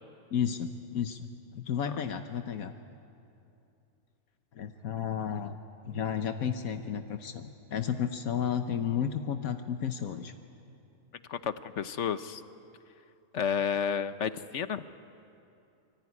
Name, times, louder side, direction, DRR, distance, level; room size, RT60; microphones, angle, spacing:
voice 1, 0.3-1.3 1.5-2.7 4.5-5.6 5.8-10.3, left 8 dB, 75° left, 7 dB, 1.4 m, -32 dB
voice 2, 11.3-12.4 13.3-14.8, left 7 dB, 60° left, 12 dB, 1.0 m, -31 dB
24.0 x 24.0 x 9.7 m, 2.7 s
omnidirectional pair, 1.5 m